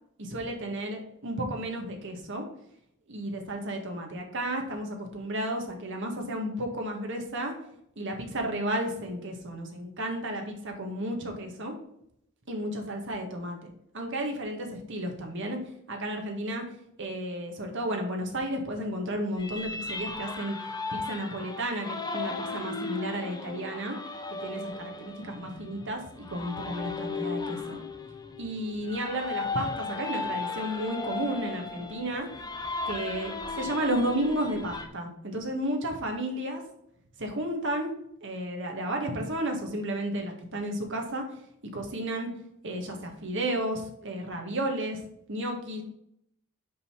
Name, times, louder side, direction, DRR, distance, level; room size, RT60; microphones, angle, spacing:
voice 1, 0.2-2.4 3.1-7.5 8.0-11.7 12.5-15.6 15.9-16.6 17.0-20.6 20.9-24.0 24.3-27.8 28.4-32.3 32.9-36.6 37.2-37.9 38.2-41.4 41.7-42.3 42.6-45.0 45.3-45.8, right 1 dB, 60° right, 2 dB, 1.7 m, -33 dB
sound 1, 19.4-34.9, left 3 dB, 20° left, 0.8 m, -36 dB
5.5 x 5.1 x 5.8 m, 0.73 s
head